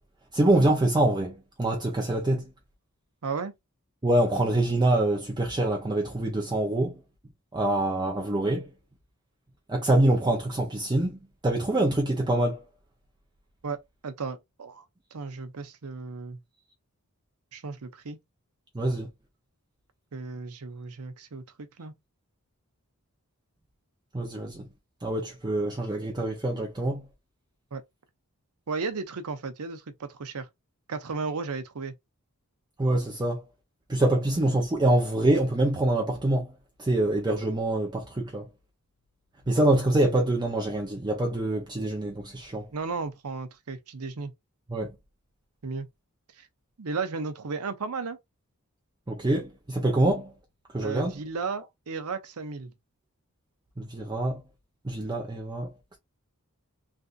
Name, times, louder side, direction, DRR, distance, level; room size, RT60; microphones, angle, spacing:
voice 1, 0.3-2.5 4.0-7.0 7.5-8.7 9.7-12.6 18.7-19.1 24.1-24.7 25.0-27.0 32.8-33.4 33.9-36.5 36.8-38.5 39.5-42.7 44.7-44.9 49.1-50.3 50.7-51.1 53.8-54.4 54.8-56.0, right 1 dB, 20° right, 0.6 m, -25 dB
voice 2, 3.2-3.5 13.6-14.8 15.1-16.4 17.5-18.2 20.1-21.9 27.7-27.8 28.7-30.5 30.9-31.9 42.7-44.3 45.6-45.9 46.4-46.5 46.8-48.2 50.8-52.7, right 4 dB, 85° right, 0.7 m, -34 dB
3.3 x 2.6 x 2.4 m
head